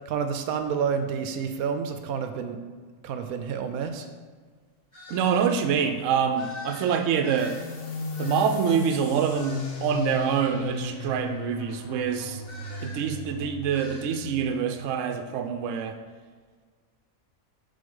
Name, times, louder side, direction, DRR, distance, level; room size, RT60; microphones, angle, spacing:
voice 1, 0.1-2.6 3.0-4.1, right 6 dB, 85° right, 8 dB, 1.1 m, -29 dB
sound 1, 4.9-5.5 6.3-8.7 9.3-9.8 12.4-13.1 13.7-14.0, left 2 dB, 40° left, 2.2 m, -45 dB
voice 2, 5.1-7.6 8.2-12.4 12.8-16.0, right 7 dB, 65° right, 6 dB, 0.9 m, -26 dB
sound 2, 7.4-14.6, left 4 dB, 70° left, 1.4 m, -36 dB
6.7 x 4.0 x 5.4 m, 1.5 s
omnidirectional pair, 1.5 m